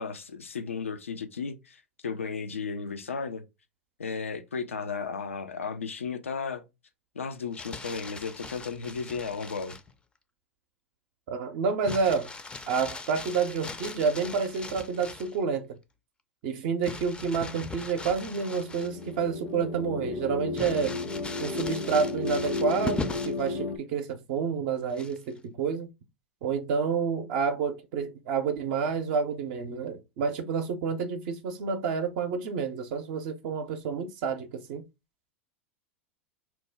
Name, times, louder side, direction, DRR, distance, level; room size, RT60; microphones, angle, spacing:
voice 1, 0.0-3.4 4.0-6.7 7.2-9.8, left 5 dB, 90° left, 0.3 m, -34 dB
Crumpling crinkling, 7.3-9.9 11.8-15.4 16.8-19.2 19.6-19.7 20.5-23.5 24.9-25.4, left 3 dB, 15° left, 0.4 m, -40 dB
voice 2, 11.3-12.3 12.7-15.7 16.4-21.0 21.4-25.9 26.4-34.8, right 5 dB, 55° right, 0.5 m, -29 dB
sound 1, 18.5-23.8, left 3 dB, 70° left, 0.8 m, -33 dB
3.0 x 2.1 x 3.3 m
hypercardioid pair, 90°, 7 cm